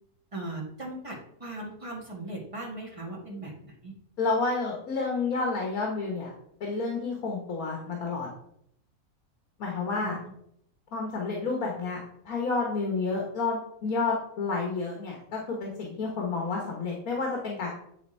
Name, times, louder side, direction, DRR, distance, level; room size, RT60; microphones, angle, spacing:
voice 1, 0.3-3.9 10.0-10.2, right 2 dB, 20° right, -3 dB, 1.8 m, -38 dB
voice 2, 4.2-6.3 6.6-8.3 9.6-10.2 10.9-17.7, left 4 dB, 75° left, 0 dB, 1.7 m, -30 dB
9.6 x 3.5 x 4.3 m, 0.72 s
omnidirectional pair, 1.5 m